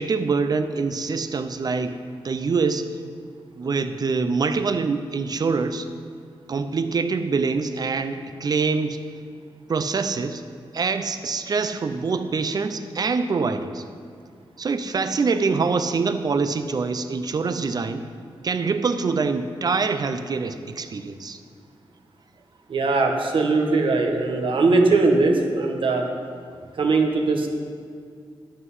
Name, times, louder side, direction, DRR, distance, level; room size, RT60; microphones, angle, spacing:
voice 1, 0.0-1.9 2.2-2.9 3.6-5.9 6.5-9.0 9.7-10.4 10.7-13.8 14.6-18.0 18.4-21.4, right 4 dB, 45° right, 10 dB, 0.6 m, -25 dB
voice 2, 22.7-26.0 26.8-27.5, right 3 dB, 65° right, 2 dB, 1.4 m, -20 dB
12.5 x 8.0 x 5.6 m, 2.2 s
wide cardioid pair, 155°, 9 cm